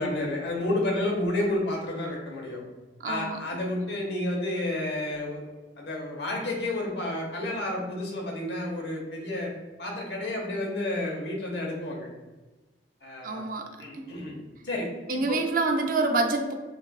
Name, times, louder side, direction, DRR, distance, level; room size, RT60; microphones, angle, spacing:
voice 1, 0.0-2.6 3.0-5.5 5.8-9.5 9.8-12.1 13.0-13.5 13.8-14.4 14.6-15.4, left 1 dB, 65° left, 0 dB, 0.9 m, -30 dB
voice 2, 3.0-3.4 13.2-13.7 13.9-14.0 15.1-16.5, right 3 dB, 50° right, 4 dB, 0.4 m, -26 dB
6.0 x 2.5 x 2.3 m, 1.2 s
head